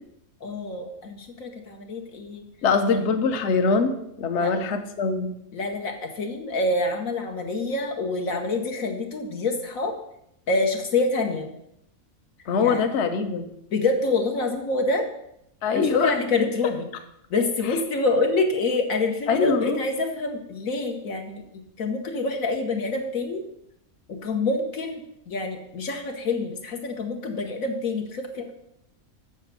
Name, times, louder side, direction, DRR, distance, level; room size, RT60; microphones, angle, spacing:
voice 1, 0.4-2.4 4.4-4.5 5.5-9.9 10.5-11.5 12.6-12.9 13.7-15.1 15.7-16.9 17.3-21.4 21.8-23.4 24.1-28.5, left 3 dB, 75° left, 3 dB, 1.5 m, -26 dB
voice 2, 2.6-5.3 12.5-13.5 15.6-16.1 19.3-19.8, left 5 dB, 60° left, 8 dB, 1.1 m, -23 dB
7.1 x 6.7 x 6.9 m, 0.78 s
omnidirectional pair, 1.5 m